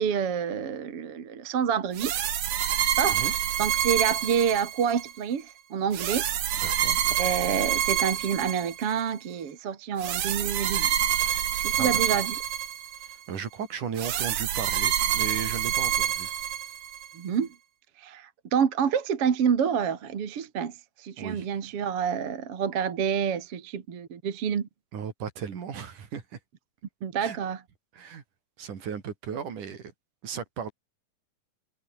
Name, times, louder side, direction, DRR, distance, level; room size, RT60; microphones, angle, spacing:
voice 1, 0.0-2.1 3.0-3.2 3.6-6.3 7.2-10.9 11.6-12.3 17.1-17.5 18.0-24.7 27.0-27.6, right 7 dB, 45° right, 2.6 m, -28 dB
sound 1, 2.0-5.1 5.9-9.0 10.0-13.2 14.0-17.1, right 10 dB, 90° right, 4.0 m, -27 dB
voice 2, 6.6-7.0 11.7-12.2 13.0-16.3 21.2-21.5 24.9-26.4 27.2-27.4 27.9-28.2 28.6-29.9 30.2-30.7, right 7 dB, 60° right, 4.2 m, -36 dB
omnidirectional pair, 4.2 m